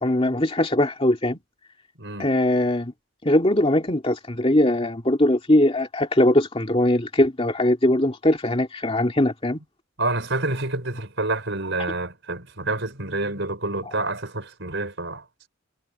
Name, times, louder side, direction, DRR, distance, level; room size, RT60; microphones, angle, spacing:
voice 1, 0.0-1.4 2.2-2.9 3.2-9.6, left 1 dB, 25° left, 2.4 m, -21 dB
voice 2, 2.0-2.3 10.0-15.2, right 2 dB, 60° right, 5.8 m, -28 dB
head